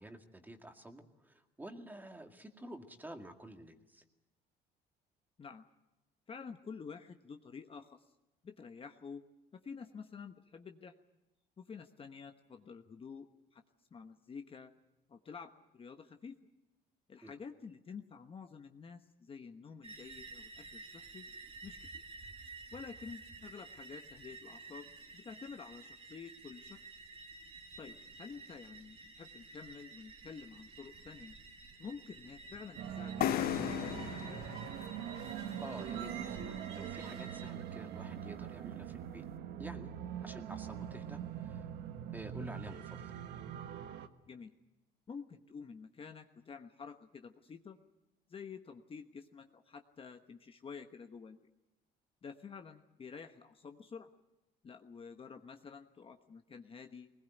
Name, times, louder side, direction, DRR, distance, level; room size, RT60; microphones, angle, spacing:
voice 1, 0.0-4.0 17.2-17.3 35.6-39.2 39.6-39.9 40.2-41.7 42.1-43.2, right 1 dB, 10° right, 5 dB, 2.1 m, -50 dB
voice 2, 6.3-8.0 8.4-9.2 9.5-10.9 11.6-13.6 13.9-14.7 15.1-16.4 17.1-21.2 21.6-22.0 22.7-26.8 27.8-31.4 31.8-34.4 44.3-44.5 45.1-47.8 48.3-51.4 52.2-54.1 54.6-57.1, left 5 dB, 35° left, 6 dB, 1.1 m, -49 dB
sound 1, 19.8-37.5, right 3 dB, 35° right, 1.8 m, -52 dB
sound 2, 32.8-44.1, right 9 dB, 80° right, 1.3 m, -43 dB
sound 3, 33.2-36.8, left 11 dB, 60° left, 0.8 m, -38 dB
20.5 x 20.0 x 9.2 m, 0.99 s
cardioid pair, 110°, 17 cm